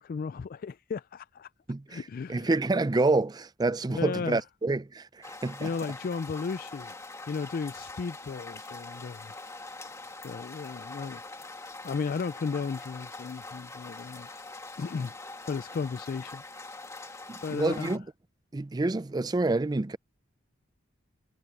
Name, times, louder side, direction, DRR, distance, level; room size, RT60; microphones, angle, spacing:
voice 1, 0.0-1.5 1.9-2.5 3.9-4.4 5.6-7.0 7.3-9.4 10.2-11.5 11.8-14.4 14.8-16.4 17.4-18.0, left 5 dB, 45° left, 0.3 m, -35 dB
voice 2, 1.7-2.0 2.3-5.7 17.3-18.0 18.5-20.0, right 2 dB, 20° right, 0.4 m, -28 dB
sound 1, 5.2-18.0, left 3 dB, 15° left, 1.8 m, -44 dB
head